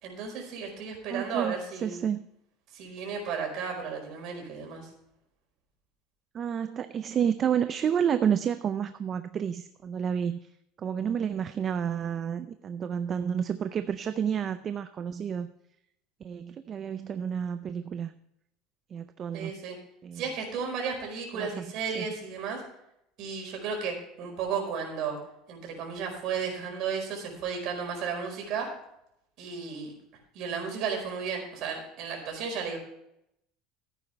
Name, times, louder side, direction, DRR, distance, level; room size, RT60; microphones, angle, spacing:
voice 1, 0.0-2.0 2.7-4.9 19.3-19.8 20.1-22.6 23.2-25.2 25.5-28.7 29.4-29.9 30.3-32.8, right 6 dB, 45° right, 1 dB, 4.8 m, -34 dB
voice 2, 1.1-1.5 1.8-2.3 6.3-10.5 10.8-15.5 16.2-18.1 18.9-19.5 20.0-20.2 21.3-21.7 21.9-22.1, right 8 dB, 25° right, 10 dB, 0.5 m, -30 dB
15.0 x 9.1 x 3.3 m, 0.79 s
cardioid pair, 170°, 0 cm